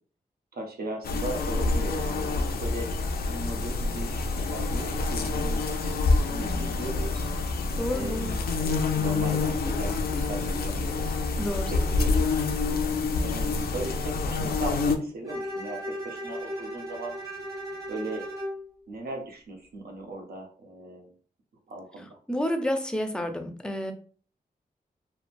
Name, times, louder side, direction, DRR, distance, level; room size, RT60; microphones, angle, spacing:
voice 1, 0.5-2.9 3.3-5.7 6.3-7.3 7.9-8.3 8.6-11.1 11.7-12.1 13.2-17.1 17.9-18.2 18.9-21.1 21.7-22.2, right 2 dB, 80° right, 2 dB, 0.7 m, -37 dB
sound 1, 1.0-15.0, left 3 dB, 80° left, 0.4 m, -27 dB
voice 2, 7.8-8.4 11.4-12.0 22.3-23.9, equal, 5° left, 6 dB, 0.4 m, -30 dB
Bowed string instrument, 15.2-18.6, equal, 20° right, 1.0 m, -36 dB
3.0 x 2.1 x 2.5 m, 0.42 s
wide cardioid pair, 80°, 16 cm